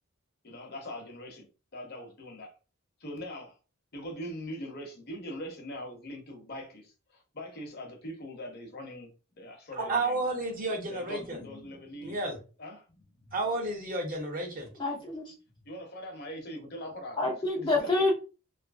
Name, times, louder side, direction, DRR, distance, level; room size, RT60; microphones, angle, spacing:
voice 1, 0.4-1.5 1.7-2.5 3.0-3.6 3.9-9.1 9.4-10.2 10.8-12.2 12.6-13.3 15.6-17.3 17.5-18.1, left 1 dB, 45° left, 0.8 m, -42 dB
voice 2, 9.7-11.4 12.0-12.4 13.3-14.7, right 2 dB, 40° right, 0.7 m, -31 dB
voice 3, 14.8-15.2 17.2-18.1, left 2 dB, 20° left, 0.4 m, -27 dB
2.8 x 2.4 x 2.4 m
head